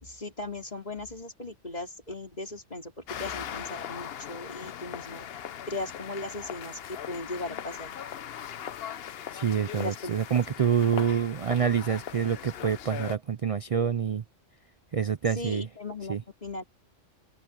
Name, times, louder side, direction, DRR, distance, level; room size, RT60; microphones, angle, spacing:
voice 1, 0.0-5.3 5.7-7.9 9.7-10.1 15.4-16.6, left 2 dB, 30° left, 3.7 m, -38 dB
sound 1, 3.1-13.2, left 9 dB, 55° left, 0.9 m, -39 dB
voice 2, 9.3-14.2 14.9-15.6 16.1-16.2, right 7 dB, 60° right, 0.3 m, -27 dB
omnidirectional pair, 1.3 m